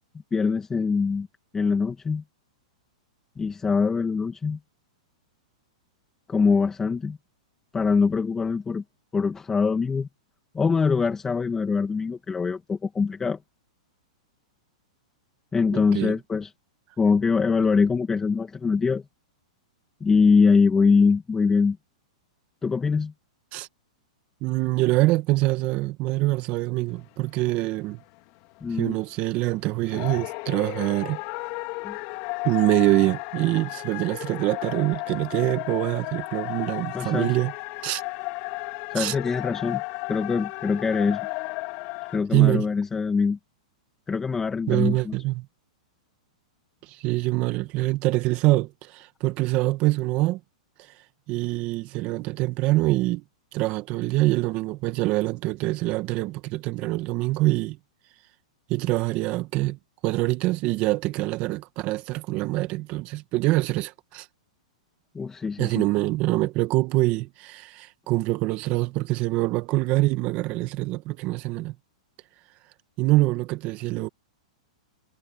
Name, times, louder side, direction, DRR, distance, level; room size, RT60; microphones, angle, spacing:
voice 1, 0.3-1.3 1.5-2.2 3.4-4.6 6.3-7.2 7.7-8.8 9.1-10.1 10.5-13.4 15.5-16.5 17.0-19.0 20.0-21.8 22.6-23.1 28.6-29.0 31.8-32.0 36.9-37.3 38.9-39.8 40.1-41.3 42.1-43.4 44.1-45.2 65.1-65.8, left 5 dB, 10° left, 2.2 m, -23 dB
voice 2, 15.7-16.1 23.5-23.7 24.4-28.0 28.7-31.2 32.4-37.5 37.8-38.0 38.9-39.1 42.3-42.7 44.7-45.5 46.8-50.4 51.3-53.2 53.5-57.8 58.7-59.8 60.0-64.3 65.6-71.7 73.0-74.1, right 19 dB, 35° right, 1.7 m, -25 dB
sound 1, 26.9-29.1 29.4-29.6 29.8-42.2, left 26 dB, 45° left, 3.8 m, -34 dB
hypercardioid pair, 140°, 4 cm